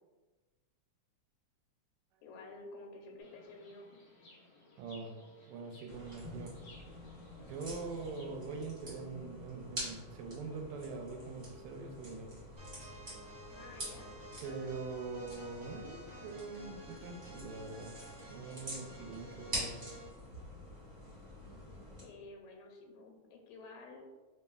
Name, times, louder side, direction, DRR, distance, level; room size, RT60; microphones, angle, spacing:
voice 1, 2.2-4.0 13.5-14.1 22.0-24.0, left 2 dB, 85° left, 1 dB, 2.0 m, -51 dB
Chirp tweet, 3.2-8.4, left 2 dB, 70° left, 1.4 m, -60 dB
voice 2, 4.8-5.1 5.5-6.5 7.4-12.3 14.4-18.0 18.3-19.8, right 4 dB, 85° right, 3 dB, 1.9 m, -43 dB
sound 1, 5.9-22.0, equal, 30° right, 1.3 m, -47 dB
sound 2, 12.6-20.2, equal, 65° right, 0.6 m, -53 dB
4.1 x 3.4 x 2.2 m, 1.3 s
omnidirectional pair, 3.3 m